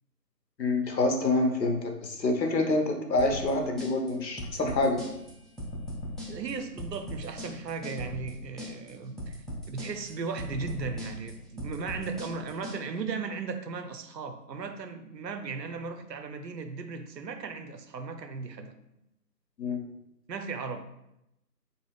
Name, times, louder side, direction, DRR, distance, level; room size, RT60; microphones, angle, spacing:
voice 1, 0.6-5.0 19.6-19.8, left 2 dB, 90° left, 3 dB, 0.8 m, -27 dB
sound 1, 3.2-12.8, left 1 dB, ahead, 0.4 m, -39 dB
voice 2, 6.3-18.7 20.3-20.8, right 4 dB, 85° right, 8 dB, 0.6 m, -36 dB
2.7 x 2.3 x 3.3 m, 0.86 s
figure-of-eight pair, 160°, 49 cm